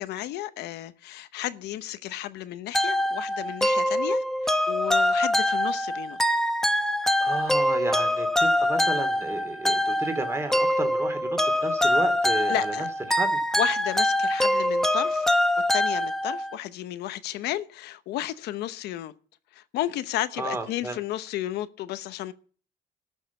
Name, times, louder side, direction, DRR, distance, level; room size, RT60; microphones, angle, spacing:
voice 1, 0.0-6.2 12.5-12.9 13.5-15.3 15.7-19.1 19.5-22.3, left 14 dB, 80° left, 1.0 m, -33 dB
sound 1, 2.7-16.6, left 1 dB, ahead, 0.9 m, -24 dB
voice 2, 7.2-12.7 13.1-13.4 20.4-21.0, right 2 dB, 15° right, 2.5 m, -33 dB
12.5 x 6.6 x 9.2 m
cardioid pair, 110°, 17 cm